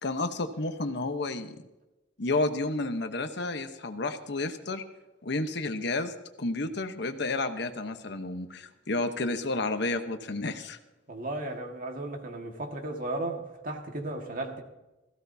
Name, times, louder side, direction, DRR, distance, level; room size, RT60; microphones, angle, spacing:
voice 1, 0.0-1.6 2.2-4.8 5.2-10.8, left 2 dB, 65° left, 8 dB, 1.0 m, -31 dB
voice 2, 11.1-14.6, right 2 dB, 50° right, 3 dB, 1.8 m, -35 dB
18.0 x 15.5 x 2.8 m, 1.1 s
head